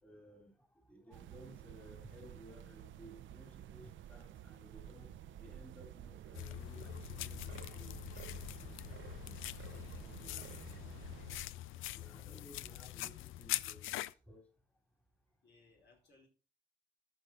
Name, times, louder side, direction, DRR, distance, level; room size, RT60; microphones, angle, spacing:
voice 1, 0.0-5.1 5.4-9.1 9.7-10.9 11.9-14.0 14.3-14.5, right 1 dB, 5° left, 3 dB, 2.8 m, -58 dB
sound 1, 1.1-11.4, right 10 dB, 75° right, 0.8 m, -51 dB
sound 2, 6.3-14.1, left 15 dB, 85° left, 0.4 m, -43 dB
voice 2, 11.5-11.9 15.4-16.3, left 3 dB, 60° left, 0 dB, 5.0 m, -66 dB
14.0 x 5.8 x 3.8 m, 0.34 s
cardioid pair, 90°, 20 cm